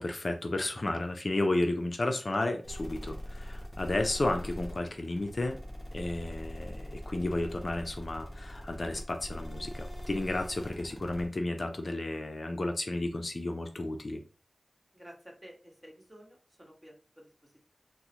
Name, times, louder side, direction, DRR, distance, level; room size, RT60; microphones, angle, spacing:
voice 1, 0.0-5.6 5.9-14.2, left 2 dB, 50° left, 5 dB, 0.4 m, -32 dB
sound 1, 2.6-11.3, equal, 25° left, 1.2 m, -42 dB
voice 2, 14.9-17.6, equal, 15° right, -1 dB, 1.2 m, -53 dB
3.7 x 2.0 x 2.8 m, 0.35 s
wide cardioid pair, 70°, 0 cm